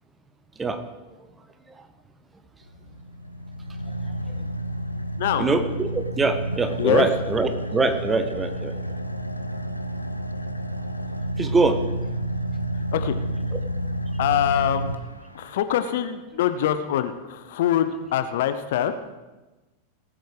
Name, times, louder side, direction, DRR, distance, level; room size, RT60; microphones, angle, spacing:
Car / Idling, 2.7-15.6, right 1 dB, 90° left, 0.6 m, -30 dB
voice 1, 5.4-8.7 11.4-11.8, right 3 dB, 15° right, 9 dB, 1.0 m, -23 dB
voice 2, 14.2-14.9 15.3-18.9, left 10 dB, 55° left, 10 dB, 0.8 m, -24 dB
18.5 x 8.1 x 4.9 m, 1.1 s
figure-of-eight pair, 90°, 0 cm